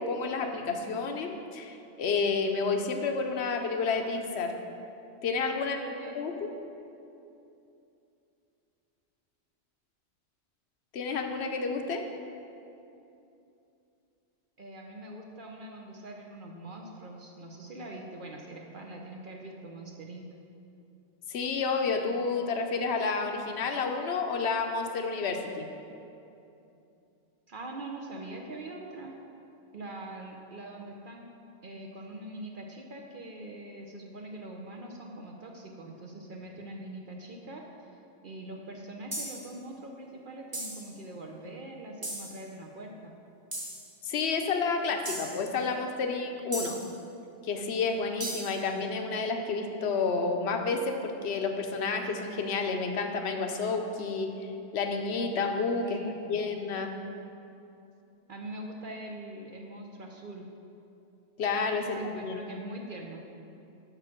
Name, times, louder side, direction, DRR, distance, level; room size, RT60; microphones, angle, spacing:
voice 1, 0.0-4.5 5.2-5.8 6.1-6.5 10.9-12.0 21.3-25.7 44.0-46.8 47.4-55.9 56.3-56.9 61.4-62.4, left 4 dB, 70° left, 5 dB, 1.0 m, -30 dB
voice 2, 5.5-6.2 14.6-20.3 27.5-29.1 29.7-31.2 31.6-37.9 38.2-43.1 48.4-48.8 55.8-56.4 58.3-60.5 61.8-63.2, right 1 dB, 50° right, 1 dB, 0.8 m, -43 dB
sound 1, 39.1-39.5 40.5-40.9 42.0-42.4 43.5-43.8 45.0-45.4 46.5-46.9 48.2-48.6, right 1 dB, 20° right, 1.1 m, -37 dB
6.9 x 6.0 x 6.0 m, 2.8 s
omnidirectional pair, 1.2 m